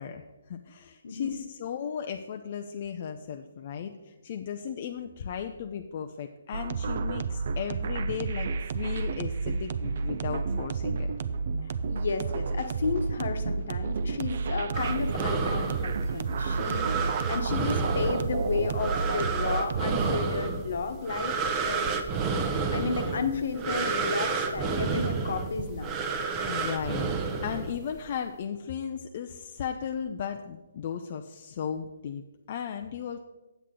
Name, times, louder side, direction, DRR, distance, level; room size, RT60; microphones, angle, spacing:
voice 1, 0.0-11.1 26.4-33.2, left 8 dB, 40° left, 5 dB, 0.5 m, -36 dB
voice 2, 1.0-1.4 11.9-21.9 22.7-25.9, left 4 dB, 65° left, 7 dB, 1.1 m, -32 dB
sound 1, 6.5-20.2, right 4 dB, 55° right, 0.5 m, -31 dB
sound 2, 14.7-28.0, right 4 dB, 20° right, 0.7 m, -31 dB
8.6 x 8.0 x 3.7 m, 1.1 s
hypercardioid pair, 155°, 0 cm